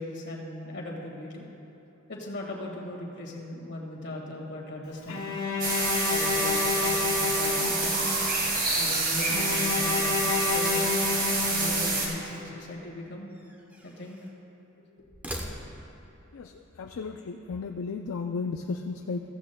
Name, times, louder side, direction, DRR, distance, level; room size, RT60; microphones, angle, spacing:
voice 1, 0.0-1.4 2.1-5.4 6.1-8.1 8.8-10.9 11.5-13.3 13.8-14.2, left 1 dB, 55° left, -1 dB, 1.8 m, -38 dB
Bowed string instrument, 5.1-8.3 9.3-12.2, left 3 dB, 90° left, 2.1 m, -29 dB
sound 1, 5.6-12.1, right 3 dB, 40° right, 2.0 m, -27 dB
sound 2, 13.3-14.4 15.0-16.1, equal, 10° right, 0.8 m, -42 dB
voice 2, 16.3-19.2, left 4 dB, 70° left, 5 dB, 0.4 m, -34 dB
15.0 x 14.5 x 2.2 m, 2.9 s
head